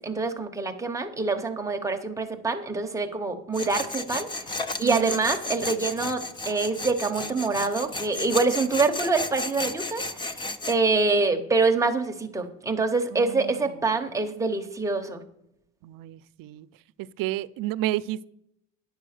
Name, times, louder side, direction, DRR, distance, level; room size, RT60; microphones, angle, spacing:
voice 1, 0.0-10.4 10.7-15.2, right 3 dB, 10° right, 0.7 m, -26 dB
Tools, 3.5-10.8, left 2 dB, 15° left, 0.3 m, -33 dB
voice 2, 4.8-5.2 13.1-13.7 15.8-16.7 17.0-18.3, right 14 dB, 85° right, 0.5 m, -31 dB
10.0 x 6.7 x 6.4 m
cardioid pair, 180°, 33 cm